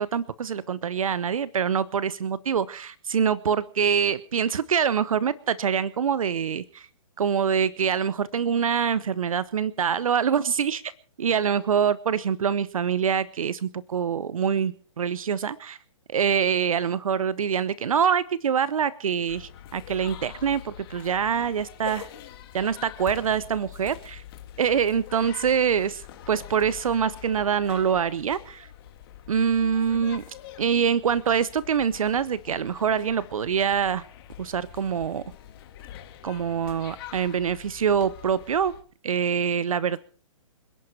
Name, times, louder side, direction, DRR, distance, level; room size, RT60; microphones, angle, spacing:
voice 1, 0.0-6.9 7.2-10.8 11.2-15.8 16.1-22.1 22.5-24.2 24.6-28.7 29.3-30.2 30.6-34.0 34.4-35.2 36.2-38.7 39.0-40.0, right 7 dB, 70° right, 18 dB, 0.9 m, -25 dB
sound 1, 19.3-38.8, left 11 dB, 40° left, 2.4 m, -45 dB
27.0 x 11.0 x 4.6 m, 0.42 s
hypercardioid pair, 135°, 18 cm